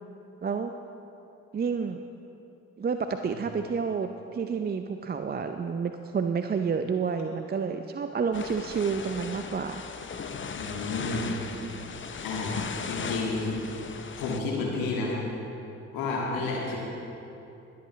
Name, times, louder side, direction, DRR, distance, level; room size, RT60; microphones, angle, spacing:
voice 1, 1.5-2.0 2.8-9.8, right 5 dB, 25° right, 7 dB, 0.5 m, -29 dB
sound 1, 8.3-14.4, left 5 dB, 35° left, 0.8 m, -37 dB
voice 2, 10.6-11.3 12.2-13.5 14.2-15.2 15.9-16.8, left 3 dB, 75° left, -3 dB, 2.1 m, -30 dB
21.5 x 8.4 x 3.1 m, 2.9 s
hypercardioid pair, 45°, 35 cm